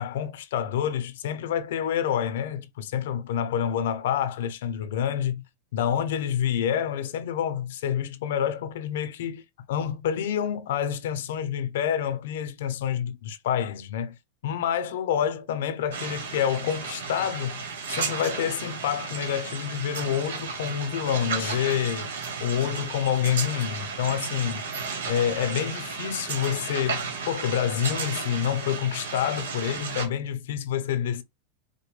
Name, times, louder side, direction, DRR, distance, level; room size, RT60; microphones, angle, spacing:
voice 1, 0.0-5.3 5.7-9.4 9.7-14.1 14.4-22.1 22.4-24.7 25.0-31.2, left 9 dB, 75° left, 0.6 m, -28 dB
sound 1, 15.9-30.1, right 5 dB, 85° right, 1.3 m, -33 dB
5.1 x 2.2 x 3.2 m
hypercardioid pair, 115°, 0 cm